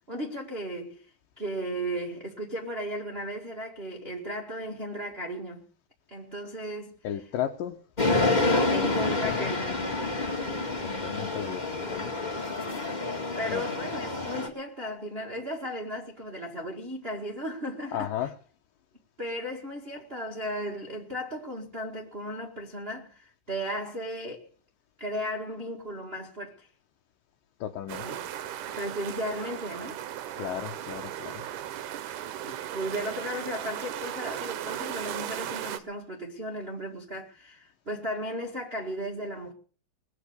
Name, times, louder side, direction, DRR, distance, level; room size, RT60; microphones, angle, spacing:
voice 1, 0.1-1.0 1.4-5.6 6.1-7.2 8.7-9.8 13.4-18.3 19.2-24.5 25.0-26.7 28.0-28.3 28.6-30.0 32.4-39.5, equal, 35° right, 0.9 m, -35 dB
voice 2, 7.0-7.8 9.0-9.5 11.0-12.1 13.5-13.6 17.9-18.3 27.6-28.1 30.4-31.4, left 11 dB, 70° left, 2.3 m, -34 dB
sound 1, 8.0-14.5, left 2 dB, 15° left, 1.6 m, -28 dB
sound 2, 27.9-35.8, right 11 dB, 70° right, 2.1 m, -36 dB
20.5 x 8.3 x 6.8 m
omnidirectional pair, 4.5 m